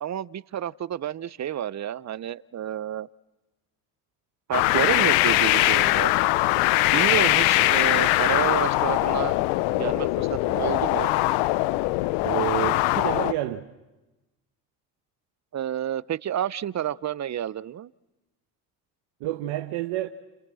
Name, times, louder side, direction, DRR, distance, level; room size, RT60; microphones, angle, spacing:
voice 1, 0.0-3.1 4.5-6.1 6.9-9.4 9.7-11.1 15.5-17.9, right 10 dB, 35° right, 0.8 m, -29 dB
sound 1, 4.5-13.3, left 18 dB, 75° left, 0.8 m, -22 dB
voice 2, 12.2-13.7 19.2-20.1, right 15 dB, 70° right, 1.3 m, -29 dB
29.5 x 29.5 x 6.3 m
hypercardioid pair, 70°, 46 cm